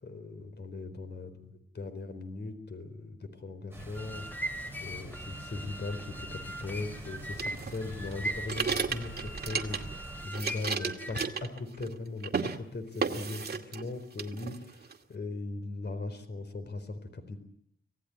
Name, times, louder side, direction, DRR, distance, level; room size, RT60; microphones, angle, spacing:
voice 1, 0.0-1.5 1.7-4.5 4.8-17.4, left 3 dB, 55° left, 10 dB, 4.3 m, -39 dB
sound 1, 3.7-10.3, right 1 dB, 10° right, 6.0 m, -45 dB
sound 2, 3.8-11.4, equal, 10° left, 3.0 m, -40 dB
sound 3, 7.4-10.0 10.3-12.0 12.2-12.6 13.0-13.9 14.2-15.0, right 5 dB, 55° right, 2.2 m, -33 dB
26.0 x 17.5 x 9.7 m, 0.69 s
wide cardioid pair, 110°, 20 cm